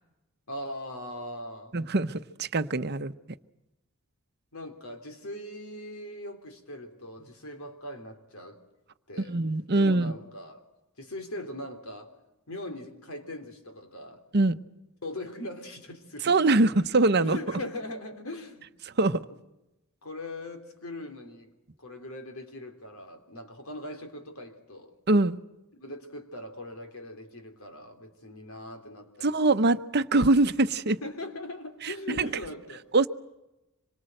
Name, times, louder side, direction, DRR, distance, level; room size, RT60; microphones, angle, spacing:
voice 1, 0.5-1.8 4.5-8.6 9.1-9.4 9.7-10.6 11.0-12.1 12.5-14.2 15.0-16.3 17.2-18.7 20.0-21.5 21.8-24.9 25.7-29.4 30.9-32.9, left 1 dB, 80° left, 6 dB, 3.6 m, -40 dB
voice 2, 1.7-3.1 9.2-10.1 14.3-14.5 16.2-17.4 19.0-19.2 25.1-25.4 29.2-31.0 31.8-32.3 32.9-33.1, right 2 dB, 50° right, 11 dB, 0.8 m, -23 dB
26.0 x 23.5 x 7.8 m, 0.96 s
head